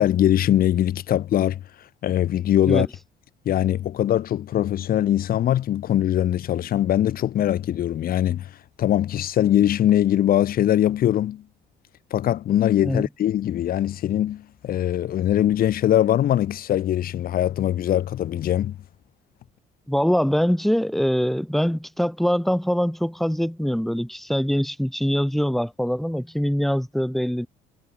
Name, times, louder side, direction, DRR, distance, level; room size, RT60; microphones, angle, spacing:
voice 1, 0.0-1.6 2.0-2.9 3.5-8.5 8.8-11.4 12.1-18.8, left 11 dB, 60° left, 2.7 m, -21 dB
voice 2, 19.9-27.5, equal, ahead, 3.6 m, -23 dB
cardioid pair, 110°, 17 cm